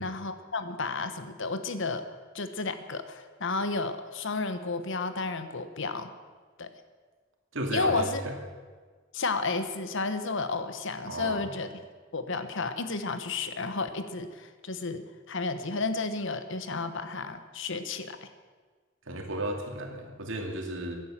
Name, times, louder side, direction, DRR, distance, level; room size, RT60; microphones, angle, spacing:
voice 1, 0.0-2.0 2.3-6.1 6.6-6.7 7.7-8.2 9.1-11.8 12.1-15.0 15.3-18.3, left 3 dB, 65° left, 9 dB, 1.2 m, -32 dB
voice 2, 7.5-8.3 11.1-11.5 19.1-21.0, right 1 dB, 70° right, 2 dB, 2.6 m, -33 dB
15.5 x 10.5 x 7.5 m, 1.5 s
head